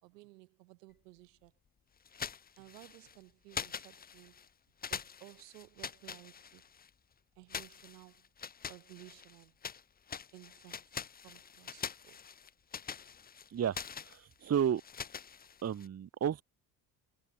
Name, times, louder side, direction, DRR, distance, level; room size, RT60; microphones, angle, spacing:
voice 1, 0.0-1.5 2.6-4.4 4.9-6.6 7.4-8.2 8.7-9.5 10.3-10.9 11.2-12.2, right 21 dB, 90° right, 5.8 m, -56 dB
sound 1, 2.1-3.2 3.5-4.5 4.8-6.9 7.5-9.8 10.1-15.9, left 7 dB, 20° left, 0.5 m, -44 dB
voice 2, 13.5-14.8 15.6-16.4, right 9 dB, 30° right, 1.0 m, -32 dB
supercardioid pair, 70°, 46 cm